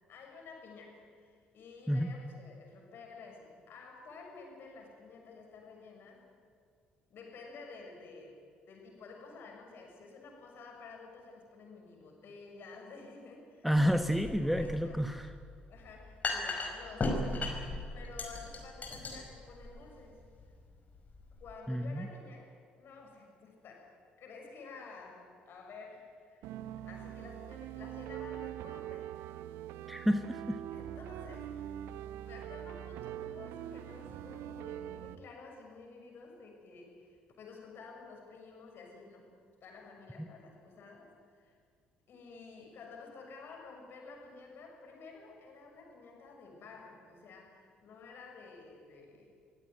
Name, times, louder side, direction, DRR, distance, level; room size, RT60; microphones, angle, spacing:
voice 1, 0.1-6.3 7.1-13.7 14.4-15.1 15.7-17.6 17.9-20.2 21.4-23.9 24.2-26.5 26.8-29.1 30.7-41.6 42.1-49.3, left 4 dB, 50° left, 1 dB, 6.6 m, -51 dB
voice 2, 13.6-15.3 21.7-22.1 29.9-30.6 40.2-40.3, equal, ahead, 9 dB, 1.3 m, -30 dB
sound 1, 13.7-21.5, left 2 dB, 35° left, 5.1 m, -38 dB
sound 2, 26.4-35.2, right 12 dB, 65° right, 0.9 m, -43 dB
25.5 x 16.5 x 9.6 m, 2.1 s
figure-of-eight pair, 50°, 5 cm